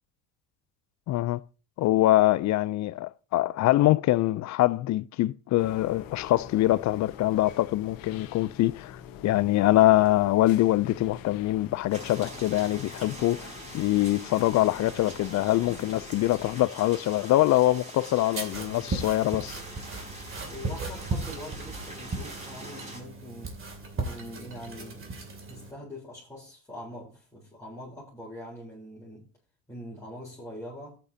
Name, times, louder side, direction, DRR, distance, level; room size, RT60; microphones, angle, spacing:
voice 1, 1.1-1.4 1.8-9.0 9.2-19.6, left 15 dB, 50° left, 0.5 m, -24 dB
sound 1, 5.6-16.7, left 9 dB, 70° left, 1.4 m, -45 dB
sound 2, 11.9-23.0, right 1 dB, 20° right, 4.7 m, -44 dB
sound 3, 18.3-25.7, right 3 dB, 35° right, 2.7 m, -36 dB
voice 2, 20.4-23.6 24.0-25.2 25.5-29.3 29.7-31.0, equal, 10° left, 3.8 m, -43 dB
13.5 x 9.0 x 2.8 m
supercardioid pair, 95°, 36 cm